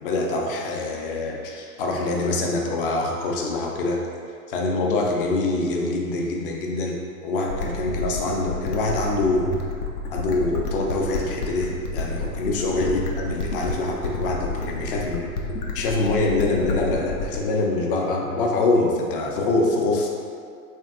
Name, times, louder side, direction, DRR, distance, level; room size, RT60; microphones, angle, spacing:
voice 1, 0.0-4.0 4.5-9.5 10.1-15.3 15.7-20.1, left 2 dB, 40° left, 0 dB, 0.4 m, -24 dB
sound 1, 7.5-17.5, left 3 dB, 90° left, 0.5 m, -30 dB
3.4 x 2.4 x 2.4 m, 2.3 s
figure-of-eight pair, 105°, 45 cm